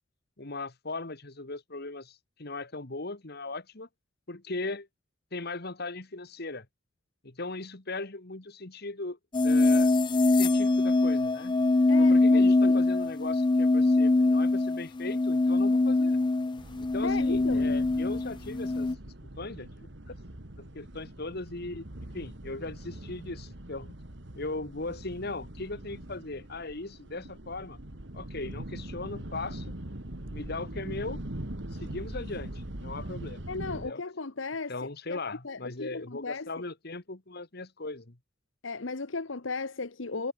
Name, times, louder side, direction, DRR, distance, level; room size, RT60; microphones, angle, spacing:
voice 1, 0.4-3.9 4.3-4.9 5.3-6.7 7.2-9.9 10.3-11.6 12.0-16.2 16.8-20.2 20.6-21.9 22.1-23.9 24.4-27.8 28.1-29.7 30.3-31.2 31.8-33.4 33.7-34.0 34.7-38.2, left 2 dB, 50° left, 1.8 m, -38 dB
sound 1, 9.3-19.0, left 2 dB, 25° left, 0.4 m, -23 dB
voice 2, 11.9-12.8 17.0-17.7 33.5-34.7 35.1-36.5 38.6-40.3, left 3 dB, 70° left, 1.1 m, -36 dB
sound 2, 16.6-33.9, right 1 dB, 60° right, 2.4 m, -42 dB
head